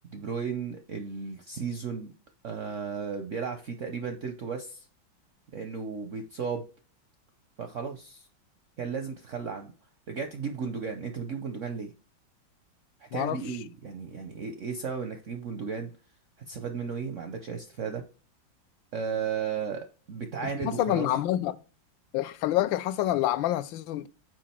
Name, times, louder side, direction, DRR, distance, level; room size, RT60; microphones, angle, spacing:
voice 1, 0.1-2.1 2.4-4.9 5.5-6.6 7.6-8.3 8.8-9.7 10.1-11.9 13.1-15.9 16.5-18.0 18.9-21.1, right 6 dB, 65° right, 0.7 m, -34 dB
voice 2, 13.1-13.6 20.6-21.6 22.1-24.1, left 13 dB, 80° left, 1.3 m, -27 dB
6.2 x 4.8 x 4.3 m
omnidirectional pair, 2.1 m